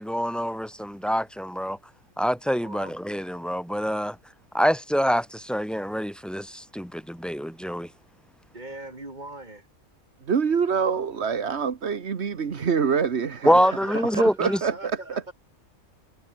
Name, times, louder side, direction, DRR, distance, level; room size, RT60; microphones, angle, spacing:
voice 1, 0.0-1.8 2.2-4.2 4.5-7.9 13.4-14.6, equal, ahead, 2.7 m, -25 dB
voice 2, 2.6-3.0 8.5-9.7 13.4-15.3, right 2 dB, 35° right, 4.7 m, -40 dB
voice 3, 10.2-13.6 14.4-15.0, right 6 dB, 55° right, 1.6 m, -25 dB
omnidirectional pair, 1.4 m